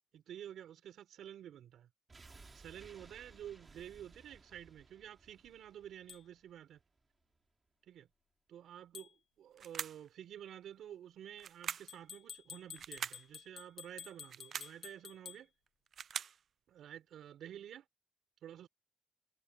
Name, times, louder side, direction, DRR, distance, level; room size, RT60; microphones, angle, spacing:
voice 1, 0.1-1.9 2.5-6.8 7.9-8.1 8.5-15.5 16.7-17.8 18.4-18.7, right 10 dB, 75° right, 4.6 m, -51 dB
sound 1, 2.1-7.0 7.3-7.4, right 3 dB, 25° right, 3.4 m, -59 dB
sound 2, 6.1-6.2 8.9-9.1 11.9-15.4, left 7 dB, 55° left, 2.1 m, -51 dB
sound 3, 9.6-10.1 11.4-12.0 12.8-13.3 14.2-14.8 15.7-16.4, right 8 dB, 50° right, 0.5 m, -43 dB
cardioid pair, 140°, 0 cm